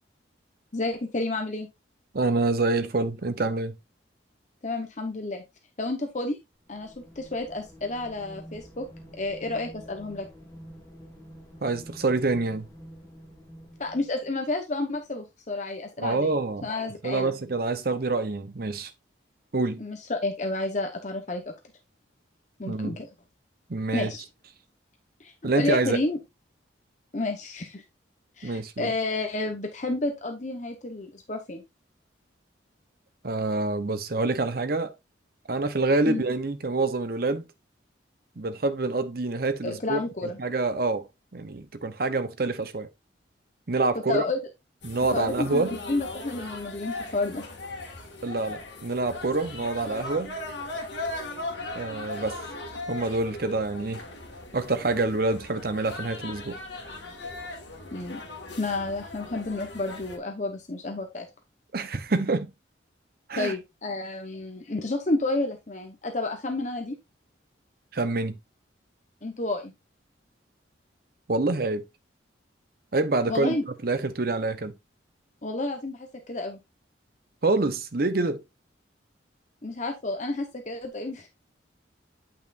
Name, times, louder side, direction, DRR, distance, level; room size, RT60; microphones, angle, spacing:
voice 1, 0.7-1.7 4.6-5.4 5.8-6.4 6.7-8.9 9.2-10.3 13.8-16.3 16.6-17.3 19.8-21.5 22.6-23.1 23.9-24.2 25.2-26.2 27.1-27.8 28.4-31.6 36.1-36.2 39.6-40.4 44.1-44.4 45.1-47.4 57.9-58.3 58.6-61.3 63.4-67.0 69.2-69.7 73.3-73.6 75.4-76.6 79.6-81.3, left 2 dB, 40° left, 0.9 m, -30 dB
voice 2, 2.1-3.8 11.6-12.7 16.0-16.7 17.0-18.9 19.5-19.8 22.7-23.0 23.7-24.1 25.4-26.0 28.4-28.9 33.2-34.9 35.5-37.4 38.4-41.1 41.3-42.9 43.7-44.2 44.8-45.8 48.2-50.4 51.7-52.4 52.9-54.0 54.5-56.6 61.7-62.5 63.3-63.5 67.9-68.4 71.3-71.8 72.9-73.6 73.8-74.7 77.4-78.4, right 3 dB, 50° right, 0.8 m, -26 dB
sound 1, 6.7-14.4, equal, 20° left, 2.1 m, -48 dB
sound 2, 44.8-60.2, left 2 dB, 65° left, 1.9 m, -38 dB
8.9 x 5.6 x 2.5 m
head